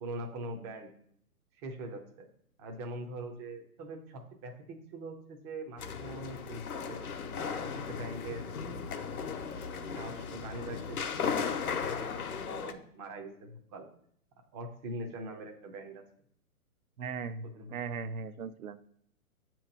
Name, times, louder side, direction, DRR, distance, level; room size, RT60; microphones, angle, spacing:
voice 1, 0.0-0.9 1.5-2.3 2.6-7.0 7.4-8.5 8.9-9.3 9.9-13.9 14.5-16.0 17.4-17.8, right 1 dB, 20° right, 3 dB, 0.6 m, -43 dB
sound 1, 5.8-12.7, left 6 dB, 70° left, 0.9 m, -36 dB
voice 2, 17.0-18.8, right 5 dB, 70° right, 11 dB, 0.7 m, -38 dB
7.8 x 3.0 x 5.1 m, 0.68 s
hypercardioid pair, 130°, 45 cm